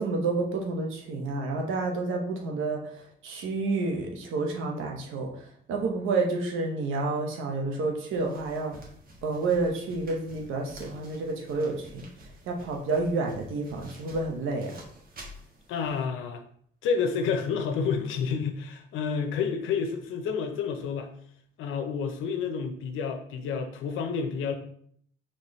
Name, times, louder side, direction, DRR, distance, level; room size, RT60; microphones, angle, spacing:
voice 1, 0.0-8.9 9.2-14.8, right 3 dB, 85° right, 2 dB, 0.9 m, -30 dB
sound 1, 8.1-16.1, equal, 45° right, 1.3 m, -50 dB
voice 2, 15.7-16.4 16.8-21.1 21.6-24.5, left 6 dB, 85° left, 6 dB, 0.6 m, -29 dB
4.3 x 3.1 x 3.1 m, 0.63 s
cardioid pair, 90°, 20 cm